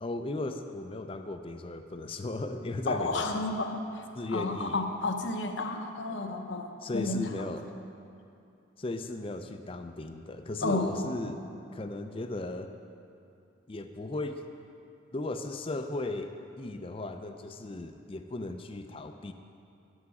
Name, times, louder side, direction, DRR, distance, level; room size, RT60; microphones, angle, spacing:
voice 1, 0.0-3.4 4.1-4.8 6.8-7.6 8.8-11.4 11.7-12.7 13.7-14.4 15.1-19.3, left 2 dB, 25° left, 7 dB, 0.4 m, -36 dB
voice 2, 2.9-7.5 10.6-11.2, left 2 dB, 65° left, 4 dB, 0.8 m, -32 dB
11.0 x 8.2 x 4.8 m, 2.7 s
head